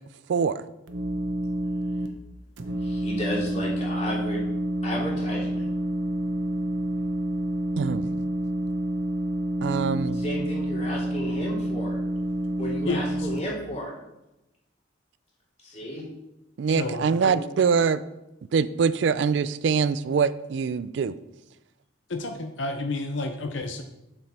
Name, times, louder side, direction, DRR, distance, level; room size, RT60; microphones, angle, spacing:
voice 1, 0.3-0.6 7.8-8.1 9.6-10.2 16.6-18.0 18.5-21.2, right 6 dB, 65° right, 15 dB, 0.3 m, -24 dB
sound 1, 0.9-2.1 2.6-13.4, right 1 dB, 85° right, 0.9 m, -28 dB
voice 2, 2.6-4.4 4.8-5.7 10.1-12.0 12.6-13.9 15.6-16.0 16.8-17.4, equal, 35° left, -4 dB, 2.9 m, -33 dB
voice 3, 12.8-13.4 16.7-17.0 22.1-23.8, left 2 dB, 70° left, 5 dB, 0.7 m, -31 dB
7.5 x 7.0 x 4.3 m, 0.94 s
head